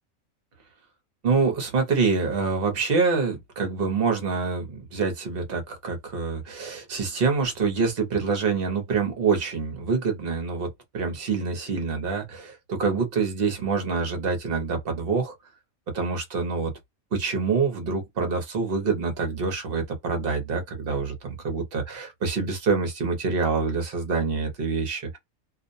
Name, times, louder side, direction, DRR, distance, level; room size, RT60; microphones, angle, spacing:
voice 1, 1.2-10.7 10.9-15.3 15.9-16.7 17.1-25.2, right 4 dB, 50° right, 0.9 m, -26 dB
2.5 x 2.1 x 2.5 m
omnidirectional pair, 1.4 m